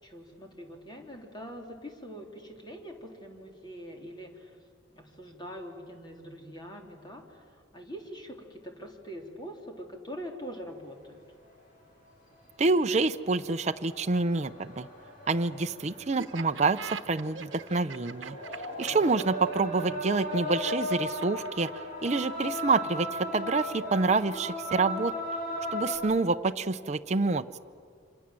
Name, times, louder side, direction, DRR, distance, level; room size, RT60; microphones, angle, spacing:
voice 1, 0.0-4.6 4.9-11.2 18.7-19.3, equal, 25° left, 2 dB, 3.4 m, -44 dB
sound 1, 11.5-11.6 12.4-12.6 13.1-26.0, equal, 45° left, 6.7 m, -37 dB
voice 2, 12.6-14.9 15.3-18.4 18.8-25.1 25.7-27.6, right 3 dB, 35° right, 7 dB, 0.6 m, -27 dB
Laughter, 16.2-21.9, right 6 dB, 75° right, 1.0 m, -42 dB
28.5 x 26.5 x 7.6 m, 2.3 s
head